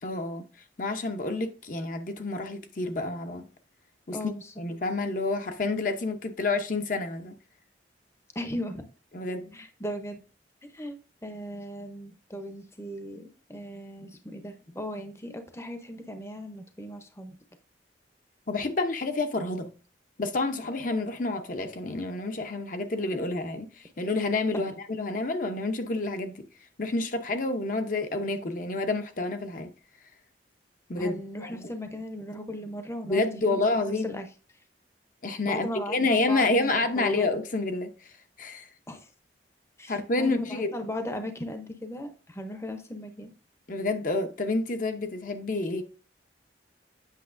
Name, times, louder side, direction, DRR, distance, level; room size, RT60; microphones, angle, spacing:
voice 1, 0.0-0.4 0.8-3.5 4.1-4.2 4.6-7.3 9.1-9.6 18.5-19.7 20.2-26.4 26.8-29.7 30.9-31.1 31.5-31.7 33.1-34.2 35.2-38.7 39.9-40.7 43.7-45.8, left 2 dB, 45° left, 0.7 m, -29 dB
voice 2, 4.1-4.5 8.3-8.8 9.5-10.2 10.6-11.0 11.2-17.4 24.5-24.6 31.0-34.3 35.5-37.3 38.9-39.1 39.8-43.3, left 1 dB, 15° left, 0.7 m, -37 dB
8.3 x 6.3 x 2.6 m
head